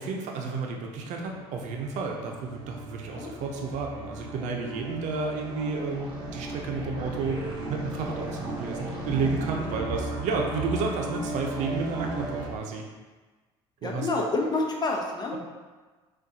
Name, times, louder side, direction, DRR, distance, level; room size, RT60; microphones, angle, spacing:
voice 1, 0.0-6.1 6.3-7.4 7.7-12.8 13.8-14.1, right 4 dB, 65° right, 1 dB, 0.7 m, -31 dB
sound 1, 1.1-12.5, right 1 dB, 35° right, 1.3 m, -36 dB
voice 2, 3.0-3.4 9.7-10.1 13.8-15.3, left 2 dB, 30° left, 1 dB, 0.8 m, -29 dB
5.9 x 2.5 x 2.8 m, 1.3 s
supercardioid pair, 75°, 13 cm